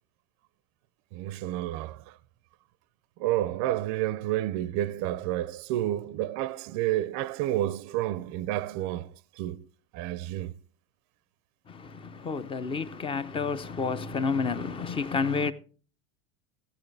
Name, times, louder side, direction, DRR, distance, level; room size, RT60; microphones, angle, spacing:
voice 1, 1.1-2.2 3.2-9.1 9.4-9.7 9.9-10.5, right 14 dB, 45° right, 0.5 m, -30 dB
voice 2, 11.7-15.5, left 5 dB, 15° left, 0.4 m, -30 dB
14.5 x 9.6 x 3.3 m
supercardioid pair, 135°, 40 cm